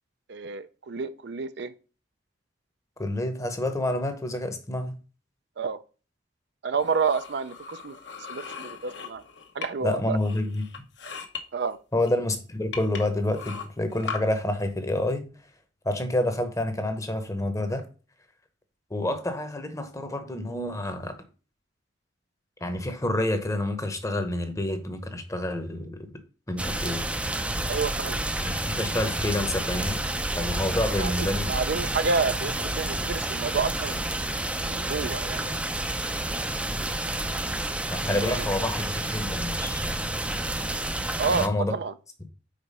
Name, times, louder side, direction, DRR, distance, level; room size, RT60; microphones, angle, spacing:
voice 1, 0.3-1.7 5.6-5.8 6.6-7.9 8.3-9.2 9.5-10.2 11.5-11.8 27.7-28.2 31.0-34.1 34.6-35.6 38.2-38.7 41.2-41.9, right 5 dB, 65° right, 0.5 m, -29 dB
voice 2, 3.0-5.0 9.8-10.6 11.9-15.3 15.8-17.8 18.9-21.2 22.6-26.1 26.5-27.0 28.4-30.1 30.4-31.5 37.9-39.8 41.3-41.7, left 1 dB, 15° left, 0.9 m, -28 dB
sound 1, 6.8-9.9 10.2-11.4 12.1-12.2 12.7-14.2, left 6 dB, 70° left, 1.2 m, -38 dB
sound 2, 26.6-41.5, right 1 dB, 5° right, 0.5 m, -29 dB
5.0 x 4.5 x 5.5 m
head